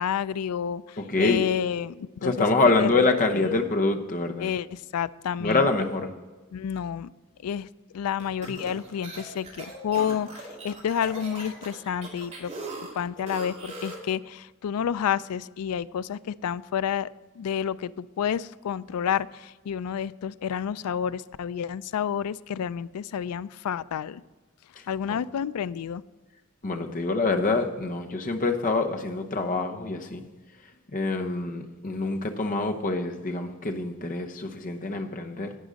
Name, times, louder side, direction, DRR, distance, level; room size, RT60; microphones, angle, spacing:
voice 1, 0.0-2.5 2.8-3.4 4.4-5.7 6.5-7.1 7.4-7.7 7.9-12.5 13.0-17.1 17.4-24.2 24.9-26.0, left 8 dB, 80° left, 18 dB, 0.3 m, -30 dB
voice 2, 1.0-1.4 2.2-4.5 5.4-6.1 25.1-25.2 26.6-30.2 30.9-35.6, left 3 dB, 40° left, 4 dB, 0.9 m, -26 dB
sound 1, 8.2-14.1, right 2 dB, 30° right, 2.5 m, -40 dB
11.5 x 8.8 x 4.0 m, 1.3 s
head